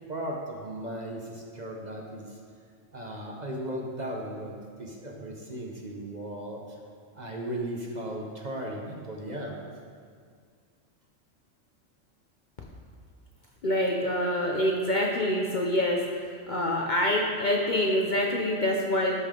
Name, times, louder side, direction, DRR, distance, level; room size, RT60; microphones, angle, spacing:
voice 1, 0.1-2.4 2.9-6.8 7.1-9.6, right 1 dB, 40° right, -1 dB, 0.9 m, -36 dB
voice 2, 13.6-19.2, left 1 dB, 45° left, -1 dB, 0.7 m, -26 dB
12.0 x 5.4 x 3.7 m, 2.1 s
omnidirectional pair, 1.4 m